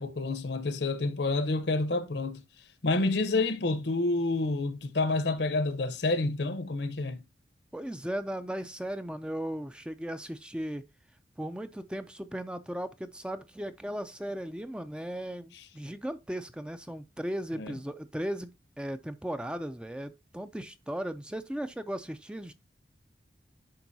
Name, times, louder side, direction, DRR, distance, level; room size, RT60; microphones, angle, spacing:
voice 1, 0.0-2.4 2.8-7.2 17.6-17.7, left 2 dB, 70° left, 0.9 m, -28 dB
voice 2, 7.7-10.8 11.4-22.5, equal, 5° right, 0.4 m, -37 dB
10.5 x 3.9 x 2.7 m
head